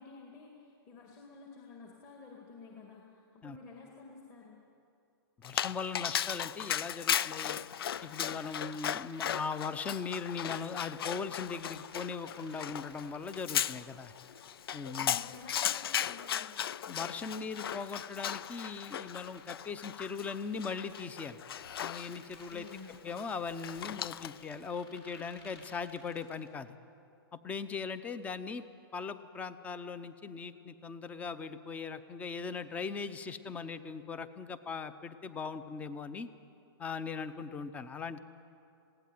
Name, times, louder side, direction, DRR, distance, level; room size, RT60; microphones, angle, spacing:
voice 1, 0.0-4.6 15.0-16.7 22.5-23.1, left 4 dB, 30° left, -1 dB, 2.6 m, -51 dB
Dog, 5.4-24.5, left 9 dB, 65° left, 0.5 m, -37 dB
voice 2, 5.4-7.6 8.0-14.1 14.7-15.2 16.9-21.4 21.8-22.7 23.0-26.8 27.3-28.6 28.9-36.3 36.8-38.2, left 5 dB, 10° left, 13 dB, 0.7 m, -39 dB
sound 1, 7.6-9.5 10.1-13.4 14.2-16.3 16.9-19.6 20.2-23.0 23.6-26.5, left 3 dB, 85° left, 6.3 m, -59 dB
20.5 x 17.0 x 9.4 m, 2.6 s
hypercardioid pair, 150°, 13 cm